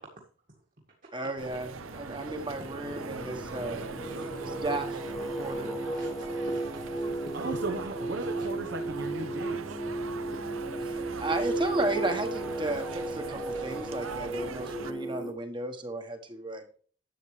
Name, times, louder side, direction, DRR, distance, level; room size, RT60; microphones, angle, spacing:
voice 1, 1.1-3.9 4.5-5.0 5.3-5.8 10.8-16.8, right 2 dB, 25° right, 6 dB, 1.4 m, -34 dB
sound 1, 1.4-14.9, right 4 dB, 80° right, 0.8 m, -41 dB
Singing, 1.7-15.3, right 2 dB, ahead, 1.2 m, -35 dB
voice 2, 3.7-4.5 5.9-6.8 8.2-8.5, right 2 dB, 40° right, 0 dB, 1.9 m, -48 dB
voice 3, 7.0-9.8, right 2 dB, 60° right, 4 dB, 1.1 m, -37 dB
11.5 x 8.4 x 3.3 m, 0.43 s
head